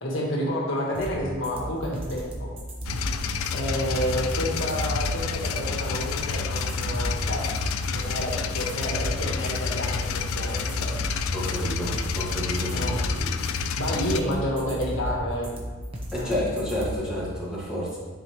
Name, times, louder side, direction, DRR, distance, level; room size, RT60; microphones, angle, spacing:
voice 1, 0.0-2.5 3.5-7.5 7.9-10.9 12.7-13.0 13.8-15.5 16.2-16.3, equal, 70° left, -2 dB, 1.4 m, -29 dB
sound 1, 0.9-16.9, equal, 25° right, 0.9 m, -34 dB
sound 2, 2.9-14.2, left 5 dB, 85° left, 0.4 m, -29 dB
voice 2, 11.3-12.8 13.1-13.3 16.1-18.0, equal, 5° right, -9 dB, 1.9 m, -29 dB
10.5 x 4.3 x 3.2 m, 1.3 s
head